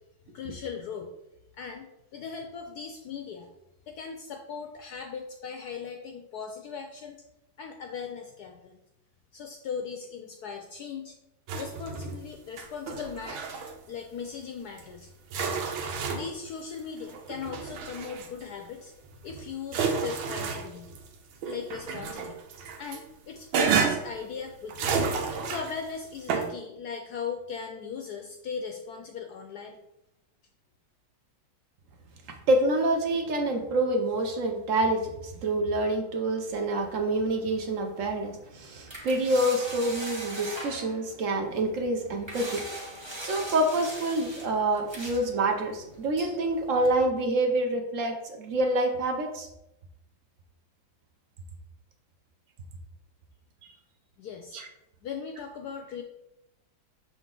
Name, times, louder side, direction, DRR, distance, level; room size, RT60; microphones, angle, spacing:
voice 1, 0.3-1.1 1.6-3.5 3.9-7.2 7.6-8.8 9.3-11.1 11.6-13.4 13.9-15.1 15.8-18.9 19.2-20.9 21.4-22.4 22.8-25.0 25.4-29.8 54.2-54.6 55.0-56.0, left 6 dB, 75° left, 4 dB, 0.9 m, -38 dB
sound 1, 11.5-12.3 12.6-13.7 14.8-14.9 15.3-16.5 17.1-18.4 19.1-21.1 21.4-23.0 23.5-24.2 24.7-25.8 26.3-26.5, right 5 dB, 85° right, 1.6 m, -30 dB
voice 2, 32.3-42.6 43.2-49.5 53.6-53.7 54.5-54.7, right 1 dB, 65° right, 4 dB, 0.8 m, -27 dB
sound 2, 36.5-47.0, right 1 dB, 20° right, 0.7 m, -42 dB
6.5 x 4.0 x 3.7 m, 0.87 s
omnidirectional pair, 2.2 m